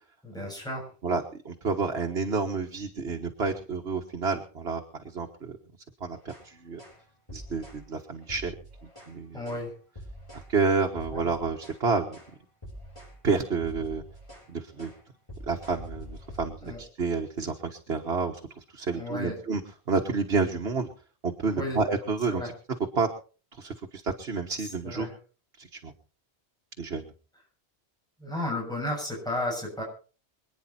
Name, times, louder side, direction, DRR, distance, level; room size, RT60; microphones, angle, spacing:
voice 1, 0.2-0.9 9.3-9.7 11.1-11.3 16.6-16.8 18.9-19.4 21.4-21.8 22.3-22.5 24.6-25.1 28.2-29.8, left 1 dB, 5° left, -2 dB, 7.2 m, -33 dB
voice 2, 1.0-4.8 5.1-5.6 6.0-6.8 7.3-8.6 9.1-9.4 10.3-12.2 13.2-14.0 14.5-14.9 15.5-19.6 19.9-20.9 21.2-22.4 23.0-23.1 23.6-25.1 25.6-25.9 26.8-27.1, right 4 dB, 70° right, 2 dB, 1.7 m, -29 dB
sound 1, 6.2-6.5 6.8-7.0 7.3-7.8 8.2-9.1 9.5-9.7 10.0-10.5 10.9-11.8 12.1-12.3 12.6-13.2 13.4-14.5 14.8-15.0 15.3-16.8, equal, 25° left, 7.4 m, -45 dB
26.0 x 9.7 x 4.3 m, 0.39 s
omnidirectional pair, 1.1 m